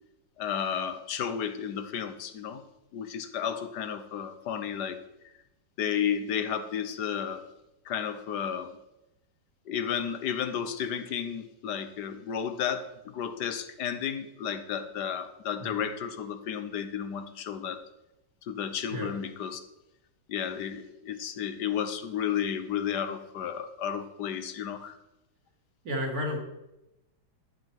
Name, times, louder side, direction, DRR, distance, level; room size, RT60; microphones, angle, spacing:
voice 1, 0.4-2.6 2.9-5.0 5.8-7.4 7.8-8.8 9.7-17.8 18.4-19.6 20.3-25.0, left 8 dB, 70° left, 10 dB, 1.3 m, -32 dB
voice 2, 25.8-26.4, equal, 50° right, 0 dB, 2.1 m, -32 dB
12.0 x 7.7 x 4.6 m, 0.93 s
omnidirectional pair, 2.0 m